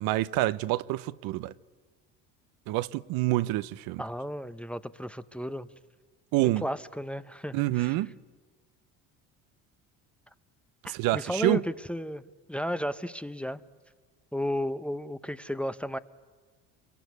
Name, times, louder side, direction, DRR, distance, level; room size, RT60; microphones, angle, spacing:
voice 1, 0.0-1.5 2.7-4.0 6.3-6.6 7.5-8.1 10.8-11.6, right 17 dB, 75° right, 0.8 m, -27 dB
voice 2, 4.0-5.7 6.4-8.0 10.8-12.2 12.5-13.6 14.3-16.0, equal, 5° left, 0.7 m, -33 dB
27.0 x 23.0 x 9.5 m
supercardioid pair, 90°, 36 cm